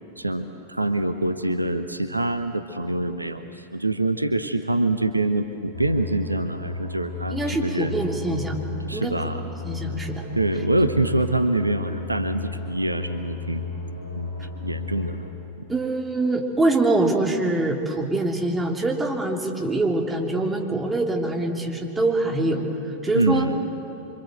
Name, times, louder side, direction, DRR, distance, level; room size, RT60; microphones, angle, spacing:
voice 1, 0.2-3.4 3.7-8.0 8.9-9.4 10.4-13.7 14.1-14.3 14.6-15.2 15.6-15.7 23.1-23.6, right 2 dB, 85° right, 9 dB, 1.0 m, -25 dB
sound 1, 5.7-15.3, left 3 dB, 70° left, 3.0 m, -33 dB
voice 2, 7.3-8.6 8.9-9.2 9.6-10.2 15.7-23.5, right 2 dB, 10° right, 1 dB, 3.0 m, -24 dB
26.5 x 25.5 x 8.0 m, 2.7 s
figure-of-eight pair, 90°, 0 cm